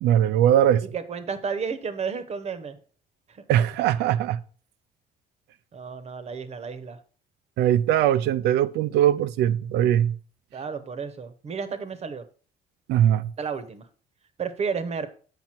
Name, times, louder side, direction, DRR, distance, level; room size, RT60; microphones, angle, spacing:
voice 1, 0.0-0.8 3.5-4.4 7.6-10.1 12.9-13.3, right 11 dB, 80° right, 0.5 m, -21 dB
voice 2, 0.9-2.8 3.3-3.6 5.7-7.0 10.5-12.2 13.4-13.9 14.4-15.1, right 5 dB, 40° right, 1.0 m, -32 dB
7.7 x 5.4 x 4.4 m
cardioid pair, 110°, 17 cm